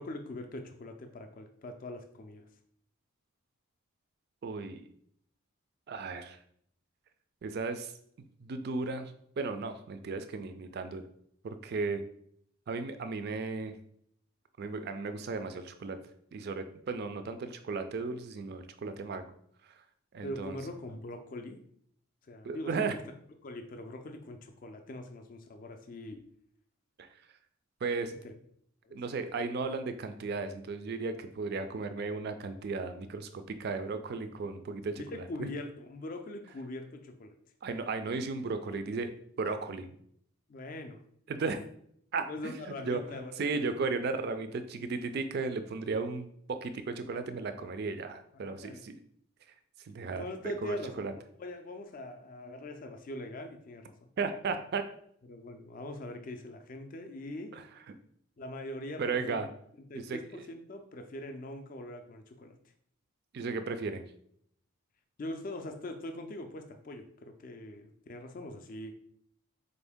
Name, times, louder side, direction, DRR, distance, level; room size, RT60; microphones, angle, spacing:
voice 1, 0.0-2.4 20.2-21.6 22.3-23.0 23.4-26.2 28.1-28.3 28.8-29.0 35.0-37.4 40.5-41.0 41.4-41.6 42.3-43.8 48.3-48.8 50.2-54.1 55.3-57.6 58.4-59.5 59.9-62.6 65.2-68.9, left 1 dB, 40° left, 6 dB, 0.3 m, -42 dB
voice 2, 4.4-4.8 5.9-6.4 7.4-7.9 8.4-11.1 11.4-12.0 12.7-13.8 14.6-16.0 16.3-19.2 19.6-19.7 20.1-20.6 22.4-22.9 27.0-27.1 27.8-28.1 28.9-35.3 37.6-39.1 39.4-40.0 41.3-41.6 42.1-42.5 42.8-49.0 49.8-50.2 50.6-51.1 54.2-54.8 57.5-57.6 59.0-59.5 59.9-60.4 63.3-64.0, right 4 dB, 45° right, 9 dB, 0.3 m, -35 dB
4.1 x 2.6 x 3.5 m, 0.66 s
head